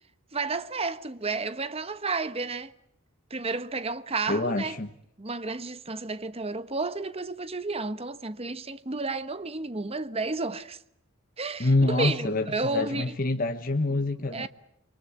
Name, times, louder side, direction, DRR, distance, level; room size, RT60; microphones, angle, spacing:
voice 1, 0.3-2.7 3.3-4.8 5.2-10.8 11.4-13.2 14.3-14.5, right 3 dB, 30° right, 1.1 m, -32 dB
voice 2, 4.3-4.9 11.6-12.5 12.7-14.5, left 2 dB, 40° left, 1.3 m, -26 dB
29.0 x 24.0 x 8.2 m
head